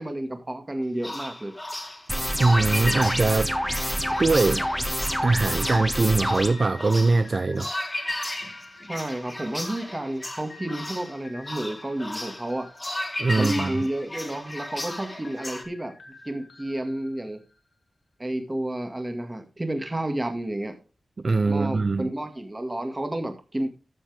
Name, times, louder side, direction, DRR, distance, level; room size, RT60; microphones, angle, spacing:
voice 1, 0.0-1.6 8.8-12.7 13.4-15.9 16.3-17.4 18.2-20.8 21.5-23.7, right 1 dB, 20° right, 2.0 m, -31 dB
sound 1, 1.0-15.6, left 1 dB, 20° left, 2.0 m, -35 dB
sound 2, 2.1-6.5, equal, ahead, 1.2 m, -27 dB
voice 2, 2.4-3.5 4.2-4.6 5.2-7.7 13.2-13.8 21.2-22.1, right 3 dB, 45° right, 0.4 m, -22 dB
sound 3, 2.5-9.9 10.5-17.7, left 3 dB, 60° left, 2.4 m, -49 dB
13.0 x 7.3 x 3.5 m
wide cardioid pair, 95°, 0 cm